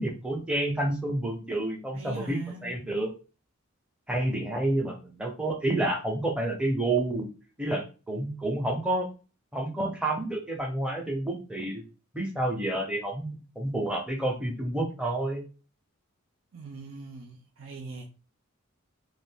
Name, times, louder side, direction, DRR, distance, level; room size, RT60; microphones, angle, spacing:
voice 1, 0.0-3.1 4.1-7.3 7.6-9.1 9.5-11.8 12.1-13.3 13.6-15.4, right 1 dB, 5° right, 0.7 m, -29 dB
voice 2, 1.9-2.7 16.5-18.1, right 3 dB, 60° right, 0.5 m, -42 dB
2.5 x 2.4 x 3.6 m
head